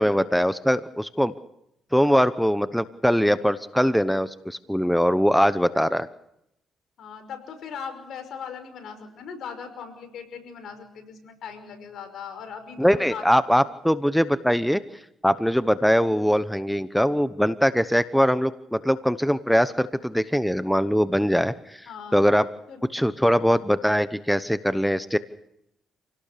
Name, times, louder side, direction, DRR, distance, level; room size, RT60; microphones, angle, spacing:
voice 1, 0.0-1.3 1.9-6.1 12.8-14.8 15.2-22.5 22.9-25.2, equal, ahead, 13 dB, 0.9 m, -22 dB
voice 2, 7.0-13.2 21.9-22.3 22.7-22.8, left 6 dB, 70° left, 7 dB, 5.5 m, -39 dB
28.0 x 18.0 x 6.8 m, 0.81 s
cardioid pair, 90°, 0 cm